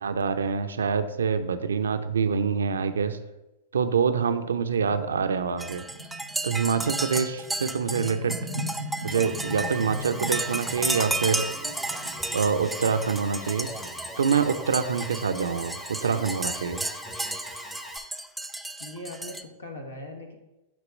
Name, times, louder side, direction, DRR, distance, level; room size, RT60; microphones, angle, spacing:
voice 1, 0.0-3.2 3.7-5.8 6.4-8.4 9.0-11.5 12.3-13.7 14.2-16.8, right 6 dB, 80° right, 8 dB, 0.5 m, -26 dB
sound 1, 4.7-14.2, left 1 dB, 60° left, 1.7 m, -41 dB
sound 2, 5.6-19.4, right 2 dB, 5° right, 0.4 m, -33 dB
Alarm, 9.1-18.0, equal, 10° left, 0.8 m, -41 dB
voice 2, 18.8-20.4, left 1 dB, 85° left, 4 dB, 1.2 m, -40 dB
8.5 x 3.0 x 5.1 m, 1.0 s
hypercardioid pair, 100°, 0 cm